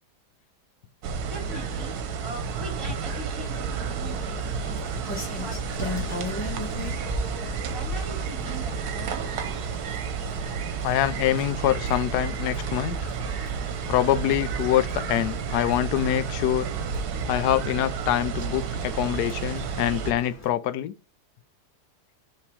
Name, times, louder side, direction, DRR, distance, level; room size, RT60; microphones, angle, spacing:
sound 1, 1.0-20.1, right 6 dB, 70° right, 1.2 m, -31 dB
voice 1, 1.2-6.3 6.9-9.3, right 2 dB, 15° right, 1.9 m, -42 dB
Rain, 4.0-20.5, left 2 dB, 10° left, 1.6 m, -39 dB
voice 2, 10.8-13.1 13.9-16.7 17.3-20.9, left 12 dB, 75° left, 1.1 m, -25 dB
5.8 x 3.5 x 4.8 m
omnidirectional pair, 1.8 m